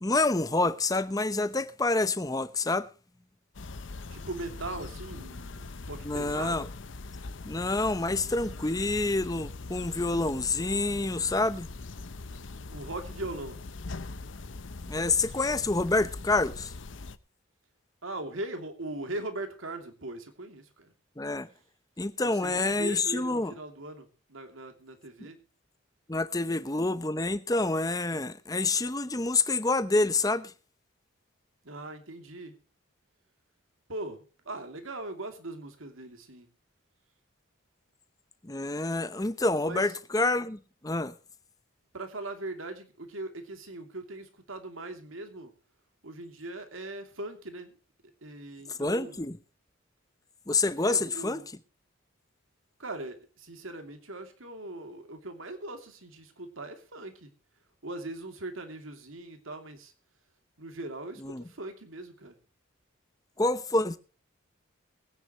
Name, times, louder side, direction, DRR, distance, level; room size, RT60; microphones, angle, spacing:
voice 1, 0.0-2.9 6.0-6.6 7.4-11.7 14.9-16.7 21.2-21.5 22.0-23.5 26.1-30.5 38.4-41.1 48.8-49.4 50.5-51.4 61.2-61.4 63.4-64.0, left 2 dB, 20° left, 0.8 m, -27 dB
sound 1, 3.5-17.2, left 3 dB, 70° left, 0.8 m, -42 dB
voice 2, 4.1-6.7 12.7-13.6 18.0-20.9 22.2-25.4 31.6-32.6 33.9-36.5 39.6-39.9 41.9-45.5 46.0-47.8 48.2-49.2 50.8-51.5 52.8-57.3 57.8-59.9 60.6-62.4, right 2 dB, 80° right, 2.8 m, -40 dB
22.5 x 9.8 x 3.0 m
head